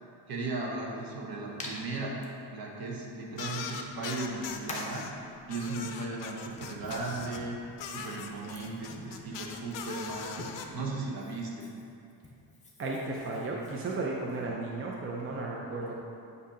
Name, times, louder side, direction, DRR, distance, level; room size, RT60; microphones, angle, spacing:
voice 1, 0.3-2.2 2.5-5.1 5.5-7.6 7.9-10.5 10.7-11.7, right 3 dB, 55° right, -2 dB, 1.1 m, -36 dB
Hands, 1.6-1.7 2.2-2.3 3.6-3.7 4.7-5.0 5.9-10.8 11.1-14.5, left 2 dB, 15° left, 0.6 m, -47 dB
sound 1, 3.4-5.1 5.5-7.4 7.8-10.7, left 7 dB, 80° left, 0.6 m, -40 dB
voice 2, 12.8-15.9, right 2 dB, 30° right, -2 dB, 0.5 m, -34 dB
8.0 x 2.8 x 4.9 m, 2.5 s
cardioid pair, 170°, 43 cm